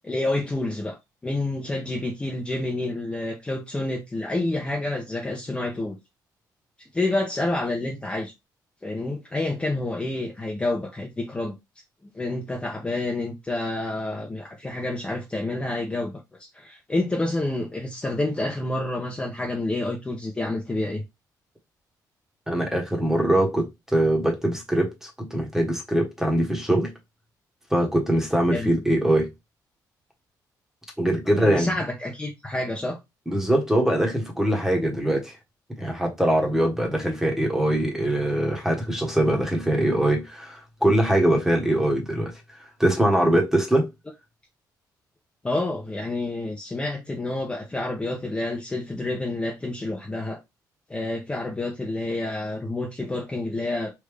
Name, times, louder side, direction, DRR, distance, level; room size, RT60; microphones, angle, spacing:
voice 1, 0.0-1.0 1.2-6.0 6.9-8.3 8.8-11.5 12.1-16.2 16.5-21.0 28.5-28.7 31.3-33.0 45.4-50.4 50.9-53.9, left 2 dB, 15° left, 0.7 m, -28 dB
voice 2, 22.5-23.7 23.9-26.9 27.7-29.3 31.0-31.7 33.3-35.3 35.8-42.3 42.8-43.9, right 1 dB, 5° right, 1.1 m, -22 dB
3.3 x 2.6 x 3.2 m
cardioid pair, 120°, 7 cm